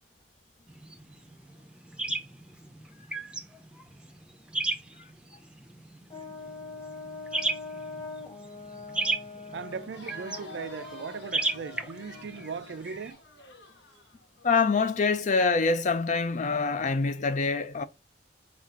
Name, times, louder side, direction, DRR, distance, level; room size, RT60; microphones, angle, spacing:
sound 1, 0.7-13.1, right 2 dB, 5° right, 0.6 m, -36 dB
Brass instrument, 6.1-12.8, left 3 dB, 25° left, 1.0 m, -43 dB
voice 1, 9.5-13.2, right 5 dB, 75° right, 0.4 m, -38 dB
Crowd, 9.7-14.7, left 1 dB, 85° left, 1.4 m, -50 dB
voice 2, 14.4-17.8, left 4 dB, 45° left, 0.5 m, -25 dB
5.7 x 2.4 x 3.6 m
head